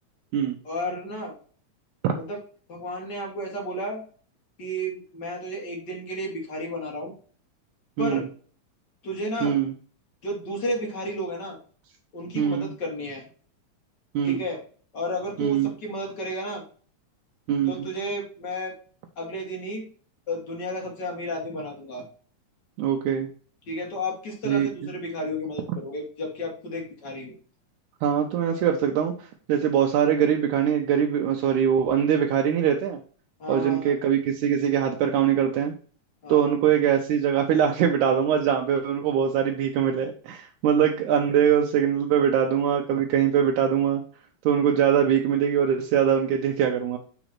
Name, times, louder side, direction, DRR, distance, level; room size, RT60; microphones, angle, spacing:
voice 1, 0.6-1.3 2.1-2.4 2.7-4.0 4.6-7.1 8.0-8.2 9.0-9.6 10.2-11.6 12.1-13.2 14.2-14.6 14.9-16.6 17.6-18.7 19.2-19.8 20.3-22.0 23.7-27.3 33.4-33.9 36.2-36.5, equal, 45° left, 0 dB, 1.5 m, -32 dB
voice 2, 9.4-9.7 12.4-12.7 14.1-14.4 15.4-15.7 17.5-17.9 22.8-23.3 24.5-24.9 28.0-33.0 33.5-35.8 36.3-44.0 44.5-47.0, right 8 dB, 85° right, 2 dB, 2.1 m, -22 dB
5.0 x 4.0 x 5.9 m, 0.43 s
omnidirectional pair, 3.5 m